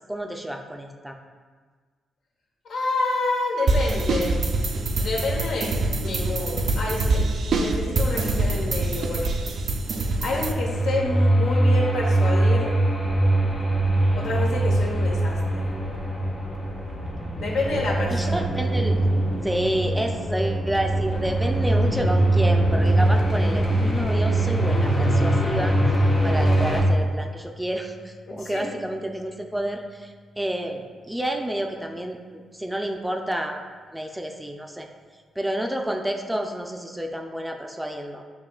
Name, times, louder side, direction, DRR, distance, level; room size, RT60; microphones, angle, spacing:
voice 1, 0.1-1.2 18.1-19.1 19.4-25.8 26.2-33.6 33.9-34.9 35.4-38.2, right 1 dB, 5° right, 3 dB, 0.4 m, -29 dB
voice 2, 2.7-4.4 4.9-5.7 6.0-7.3 7.6-9.5 10.2-12.8 14.1-15.7 17.4-18.4 28.3-28.6, left 2 dB, 80° left, -2 dB, 0.9 m, -28 dB
sound 1, 3.7-10.5, right 2 dB, 70° right, 0.4 m, -24 dB
sound 2, 10.4-26.8, right 1 dB, 55° left, 1.1 m, -22 dB
sound 3, 21.9-30.3, left 2 dB, 25° left, 0.8 m, -37 dB
7.2 x 2.8 x 2.3 m, 1.5 s
cardioid pair, 70°, 0 cm